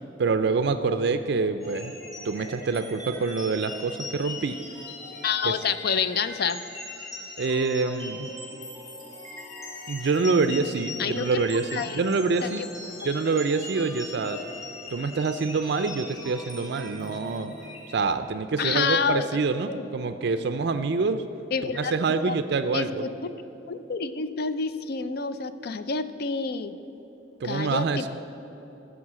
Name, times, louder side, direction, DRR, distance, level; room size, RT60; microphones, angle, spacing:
voice 1, 0.2-1.9 2.2-4.6 5.4-5.6 7.4-8.3 9.9-12.7 13.0-14.4 14.9-17.5 17.9-21.3 21.6-23.1 27.4-28.1, right 4 dB, 60° right, 9 dB, 0.4 m, -26 dB
sound 1, 1.6-18.0, left 2 dB, 20° left, 2.1 m, -40 dB
voice 2, 5.2-6.6 11.0-11.3 11.7-12.0 12.4-12.7 13.0-13.1 18.6-19.4 19.6-19.9 21.5-21.9 22.2-22.4 22.7-23.1 23.7-26.8 27.4-28.1, left 5 dB, 55° left, 12 dB, 0.5 m, -28 dB
13.0 x 5.0 x 7.4 m, 3.0 s
head